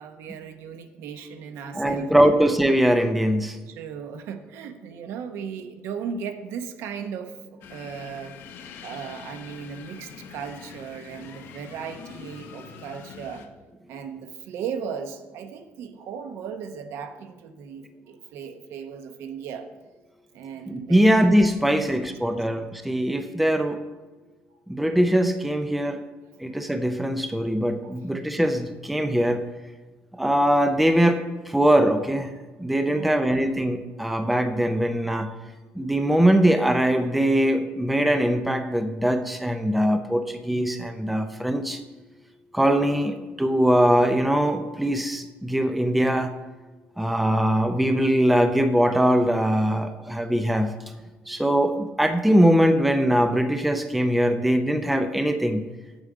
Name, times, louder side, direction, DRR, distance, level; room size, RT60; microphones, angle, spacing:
voice 1, 0.0-2.4 3.7-8.3 8.8-13.5 13.9-19.7 20.3-21.2 21.6-22.4 26.5-26.6 27.8-28.0 32.8-33.2, right 7 dB, 70° right, 8 dB, 0.9 m, -37 dB
voice 2, 1.7-3.6 20.7-23.8 24.7-26.0 26.4-29.4 30.1-32.3 32.6-35.3 35.8-41.8 42.5-46.3 47.0-50.7 51.3-55.6, equal, ahead, 8 dB, 0.4 m, -22 dB
sound 1, 7.6-13.5, left 7 dB, 60° left, 0.8 m, -44 dB
8.3 x 7.8 x 4.9 m, 1.2 s
cardioid pair, 170°, 4 cm